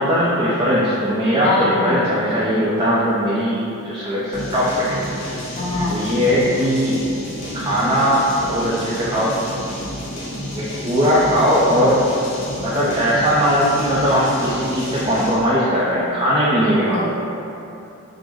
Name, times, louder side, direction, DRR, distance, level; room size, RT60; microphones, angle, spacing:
voice 1, 0.0-5.4 5.9-7.0 7.5-9.4 10.6-12.1 12.6-17.1, equal, 20° right, -9 dB, 0.4 m, -19 dB
voice 2, 1.4-2.0 5.6-6.0 16.6-17.1, left 2 dB, 30° left, -5 dB, 0.6 m, -24 dB
sound 1, 4.3-15.5, equal, 80° left, 1.2 m, -30 dB
5.0 x 2.0 x 3.5 m, 2.8 s
head